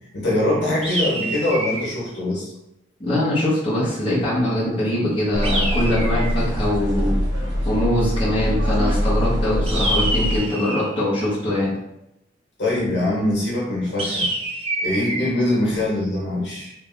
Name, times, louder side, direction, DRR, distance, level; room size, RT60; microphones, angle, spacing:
voice 1, 0.1-2.5 12.6-14.3 14.8-16.7, left 1 dB, 60° left, -5 dB, 1.3 m, -23 dB
sound 1, 0.8-2.0 5.4-6.5 9.7-10.9 14.0-15.2, right 1 dB, 30° right, 0.6 m, -26 dB
voice 2, 3.0-7.2 7.6-11.8, left 1 dB, 30° left, -9 dB, 1.1 m, -22 dB
sound 2, 5.3-10.4, equal, 80° right, 1.3 m, -23 dB
3.3 x 2.8 x 3.9 m, 0.84 s
head